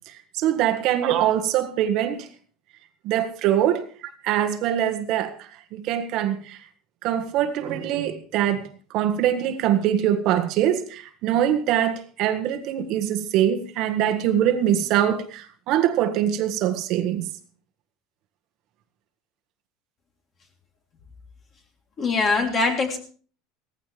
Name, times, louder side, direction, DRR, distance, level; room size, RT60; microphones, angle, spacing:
voice 1, 0.1-2.3 3.0-6.6 7.0-17.3, right 11 dB, 50° right, 1.6 m, -23 dB
voice 2, 22.0-23.0, left 3 dB, 30° left, 3.4 m, -22 dB
17.5 x 15.0 x 3.4 m
supercardioid pair, 150°, 0 cm